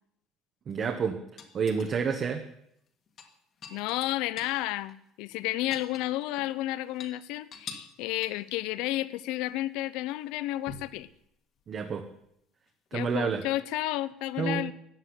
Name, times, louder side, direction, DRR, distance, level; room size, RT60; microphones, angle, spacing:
voice 1, 0.7-1.2 1.5-2.4 11.7-12.0 12.9-13.4 14.4-14.7, right 6 dB, 30° right, 5 dB, 1.1 m, -29 dB
sound 1, 1.4-2.2 3.1-4.6 4.9-5.0 5.3-6.5 6.9-7.1 7.5-8.0 8.2-8.5 10.7-11.0 12.7-12.8, left 5 dB, 35° left, 1.9 m, -45 dB
voice 2, 3.7-11.1 12.9-14.7, left 16 dB, 75° left, 17 dB, 0.7 m, -32 dB
15.0 x 9.8 x 9.7 m, 0.75 s
cardioid pair, 175°, 0 cm